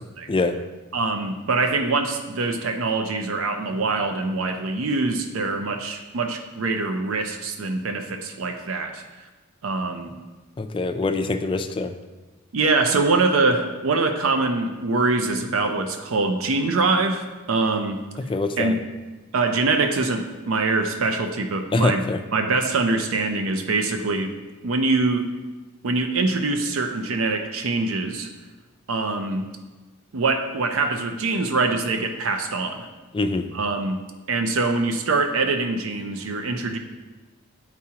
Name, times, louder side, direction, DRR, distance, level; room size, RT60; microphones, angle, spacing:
voice 1, 0.9-9.0 9.6-10.1 12.5-18.0 18.6-18.8 19.3-22.0 22.3-24.3 24.6-25.3 25.8-28.3 28.9-29.5 30.1-32.9 33.5-36.8, right 3 dB, 70° right, 5 dB, 0.5 m, -24 dB
voice 2, 10.6-11.9 18.3-18.8 21.7-22.2 33.1-33.5, left 3 dB, 25° left, 8 dB, 0.4 m, -24 dB
9.7 x 4.7 x 2.8 m, 1.2 s
head